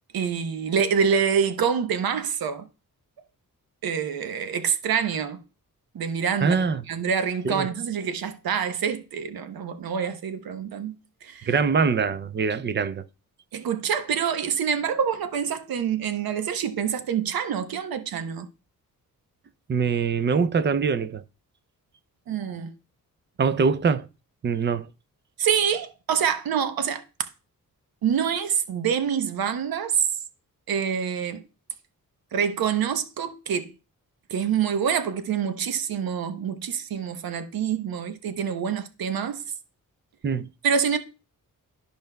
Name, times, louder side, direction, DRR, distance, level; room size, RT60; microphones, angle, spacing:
voice 1, 0.1-2.7 3.8-5.4 5.9-6.6 6.9-10.9 11.2-11.6 13.5-18.5 22.3-22.7 25.4-27.0 28.0-30.1 30.7-31.4 32.3-33.7 34.3-39.4 40.6-41.0, right 7 dB, 90° right, 0.9 m, -26 dB
voice 2, 6.4-6.8 7.4-7.7 11.5-13.0 19.7-21.2 23.4-24.1 24.4-24.9 40.2-40.5, right 5 dB, 35° right, 0.4 m, -23 dB
12.5 x 5.1 x 2.2 m
wide cardioid pair, 170°, 35 cm